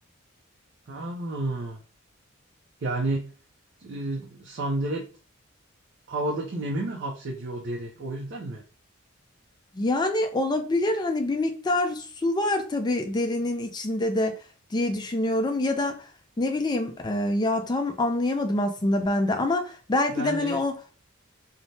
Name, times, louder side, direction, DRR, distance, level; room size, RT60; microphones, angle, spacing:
voice 1, 0.9-1.8 2.8-3.3 3.8-5.1 6.1-8.6 20.1-20.6, right 2 dB, 55° right, 0.4 m, -31 dB
voice 2, 9.7-14.3 14.7-16.0 16.4-20.8, left 2 dB, 20° left, 0.3 m, -26 dB
3.2 x 2.1 x 2.6 m
head